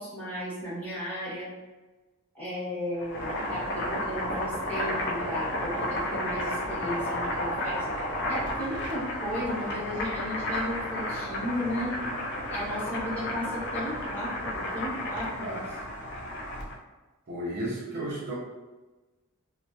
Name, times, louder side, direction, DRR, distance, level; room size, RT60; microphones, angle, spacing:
voice 1, 0.0-1.5 2.3-12.0 12.5-15.6, equal, 10° left, -11 dB, 1.2 m, -34 dB
Boiling, 2.9-16.8, left 1 dB, 50° left, 0.5 m, -32 dB
voice 2, 17.3-18.4, right 1 dB, 45° right, -5 dB, 0.5 m, -33 dB
2.7 x 2.0 x 2.2 m, 1.2 s
head